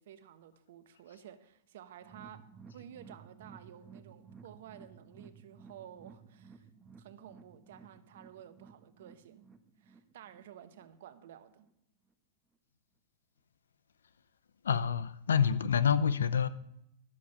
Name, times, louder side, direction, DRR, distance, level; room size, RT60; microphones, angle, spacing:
voice 1, 0.0-6.7 7.0-9.5 9.8-11.7, right 10 dB, 70° right, 1.1 m, -53 dB
sound 1, 2.0-11.3 11.6-11.7 12.1-12.2, right 5 dB, 15° right, 1.3 m, -56 dB
voice 2, 14.6-16.5, left 7 dB, 90° left, 0.7 m, -27 dB
11.5 x 7.2 x 6.6 m
hypercardioid pair, 120°, 0 cm